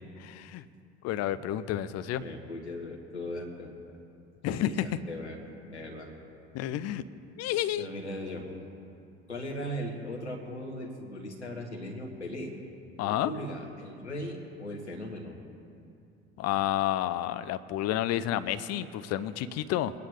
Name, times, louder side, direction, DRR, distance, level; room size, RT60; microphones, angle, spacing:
voice 1, 0.2-0.6 1.0-2.2 4.4-4.9 6.5-7.0 7.4-7.9 13.0-13.3 16.4-19.9, left 12 dB, 50° left, 13 dB, 0.7 m, -30 dB
voice 2, 2.2-3.8 4.5-5.4 5.7-6.1 7.8-8.4 9.3-12.5 13.0-15.4, left 1 dB, 90° left, 0 dB, 1.6 m, -38 dB
22.0 x 9.8 x 3.6 m, 2.5 s
figure-of-eight pair, 60°, 33 cm